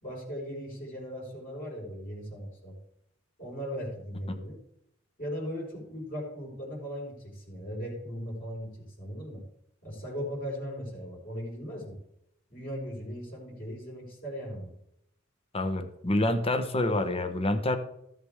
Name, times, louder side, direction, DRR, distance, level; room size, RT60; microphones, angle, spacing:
voice 1, 0.0-2.8 3.4-4.6 5.2-9.4 9.8-12.0 12.5-14.7, equal, 45° left, -5 dB, 4.6 m, -38 dB
voice 2, 15.5-17.8, left 1 dB, 30° left, 8 dB, 1.1 m, -27 dB
14.5 x 7.8 x 3.6 m, 0.77 s
head